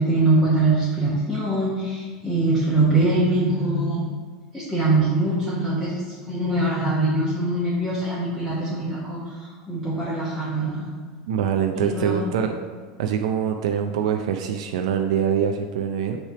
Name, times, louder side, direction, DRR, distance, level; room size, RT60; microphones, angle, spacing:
voice 1, 0.0-4.1 4.5-10.9 11.7-12.4, right 2 dB, 5° left, -9 dB, 1.1 m, -23 dB
voice 2, 11.3-12.5 13.0-16.2, right 8 dB, 85° right, 5 dB, 0.4 m, -24 dB
5.8 x 3.3 x 5.7 m, 1.6 s
supercardioid pair, 155°, 3 cm